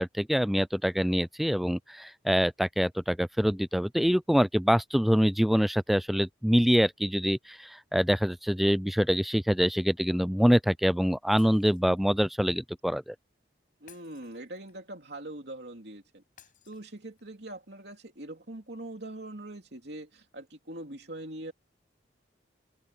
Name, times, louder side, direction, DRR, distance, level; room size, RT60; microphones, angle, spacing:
voice 1, 0.0-13.1, equal, ahead, 0.3 m, -25 dB
Shatter, 11.4-12.3 13.9-15.0 16.4-17.4, left 9 dB, 45° left, 6.2 m, -59 dB
voice 2, 13.8-21.5, right 1 dB, 65° right, 2.9 m, -42 dB
open air
head